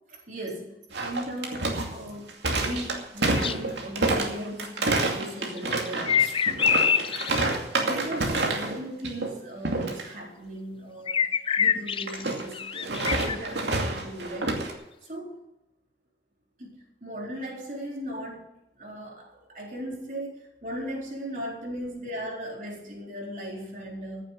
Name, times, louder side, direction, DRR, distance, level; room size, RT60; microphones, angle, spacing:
voice 1, 0.1-0.7 0.9-6.4 7.1-11.2 11.6-14.6 15.1-15.4 16.6-18.3 18.8-24.2, equal, 45° right, -2 dB, 4.1 m, -37 dB
sound 1, 0.9-8.8 9.0-9.3 9.6-10.0 12.1-14.7, right 2 dB, 85° right, 2.5 m, -28 dB
sound 2, 3.3-3.6 5.4-7.6 11.1-13.4, left 7 dB, 30° left, 0.4 m, -25 dB
15.0 x 7.5 x 7.6 m, 0.92 s
head